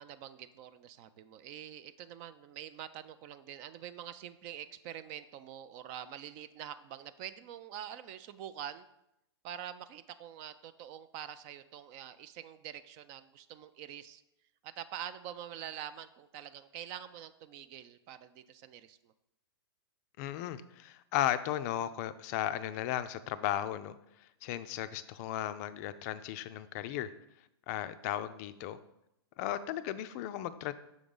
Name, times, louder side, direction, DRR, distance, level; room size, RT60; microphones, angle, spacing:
voice 1, 0.0-8.9 9.4-14.2 14.6-19.1, right 10 dB, 35° right, 13 dB, 0.3 m, -45 dB
voice 2, 20.2-23.9 24.2-27.1 27.7-28.8 29.4-30.7, left 12 dB, 40° left, 12 dB, 0.4 m, -35 dB
6.1 x 3.8 x 5.4 m, 0.82 s
hypercardioid pair, 125°, 14 cm